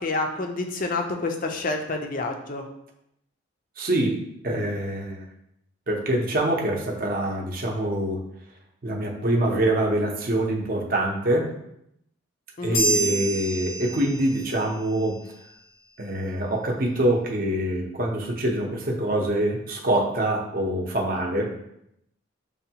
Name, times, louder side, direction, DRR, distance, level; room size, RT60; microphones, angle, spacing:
voice 1, 0.0-2.6 12.6-12.8, left 3 dB, 40° left, 4 dB, 0.5 m, -28 dB
voice 2, 3.8-5.3 5.9-8.2 8.8-11.5 12.6-15.2 16.0-21.5, right 1 dB, 45° right, 0 dB, 0.7 m, -25 dB
sound 1, 12.7-14.6, right 2 dB, 85° left, 0.9 m, -27 dB
6.5 x 2.2 x 2.8 m, 0.78 s
head